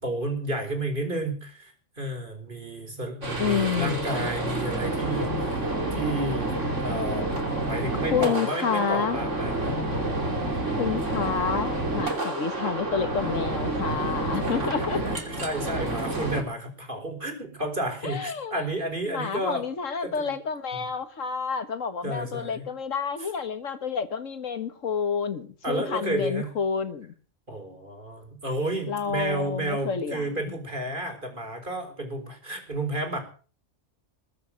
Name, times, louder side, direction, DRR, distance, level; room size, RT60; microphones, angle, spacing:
voice 1, 0.0-9.8 10.5-10.6 14.4-19.6 20.0-20.3 20.7-20.8 22.0-22.7 25.6-26.5 27.5-33.2, right 1 dB, 40° right, 4.6 m, -32 dB
sound 1, 3.2-16.4, right 2 dB, 65° right, 3.4 m, -29 dB
voice 2, 3.4-4.3 7.9-9.2 10.7-15.0 18.0-18.6 19.0-27.1 28.9-30.6, left 6 dB, 75° left, 1.8 m, -29 dB
21.5 x 8.0 x 7.5 m
omnidirectional pair, 1.3 m